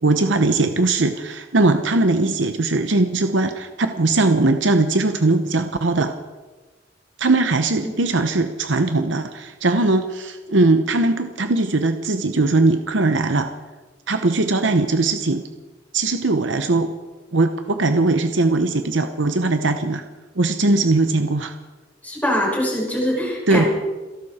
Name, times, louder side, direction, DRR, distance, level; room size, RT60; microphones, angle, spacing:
voice 1, 0.0-6.2 7.2-13.5 14.1-15.4 15.9-16.9 17.3-20.0 20.4-21.5 23.5-23.7, right 2 dB, 70° right, 7 dB, 0.9 m, -20 dB
voice 2, 22.0-23.7, equal, 10° left, -3 dB, 5.9 m, -23 dB
28.5 x 11.5 x 4.3 m, 1.3 s
head